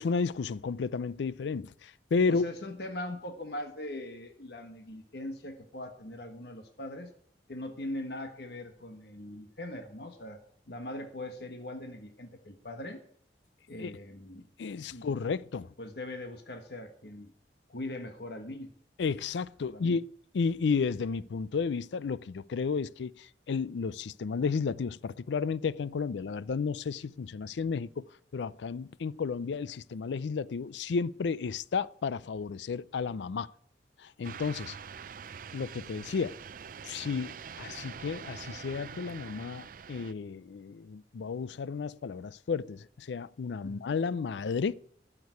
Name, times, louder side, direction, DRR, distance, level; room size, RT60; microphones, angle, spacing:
voice 1, 0.0-2.5 13.8-13.9 14.6-15.7 19.0-20.0 20.3-28.1 28.3-33.5 34.0-34.8 35.5-36.4 36.8-44.7, left 5 dB, 85° left, 0.4 m, -32 dB
voice 2, 2.3-7.1 7.5-10.4 10.7-13.0 13.7-14.4 14.9-15.0 15.8-17.3 17.7-18.7 19.6-20.0 43.6-43.9, left 1 dB, 65° left, 1.3 m, -41 dB
sound 1, 34.2-40.1, right 6 dB, 50° right, 0.4 m, -45 dB
12.5 x 6.8 x 9.4 m
head